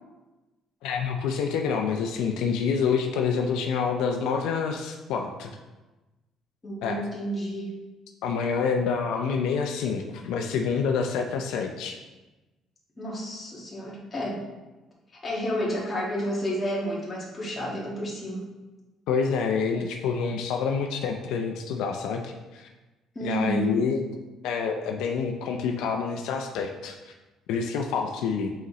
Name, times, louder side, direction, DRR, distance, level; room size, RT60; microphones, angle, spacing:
voice 1, 0.8-5.5 6.8-7.0 8.2-12.0 19.1-22.7 23.2-24.0 24.4-27.1 27.5-28.5, left 6 dB, 80° left, 3 dB, 0.5 m, -27 dB
voice 2, 6.6-7.7 13.0-14.4 15.2-18.5 23.1-23.8, equal, 20° left, -5 dB, 1.6 m, -30 dB
7.9 x 4.0 x 3.1 m, 1.1 s
cardioid pair, 155°, 0 cm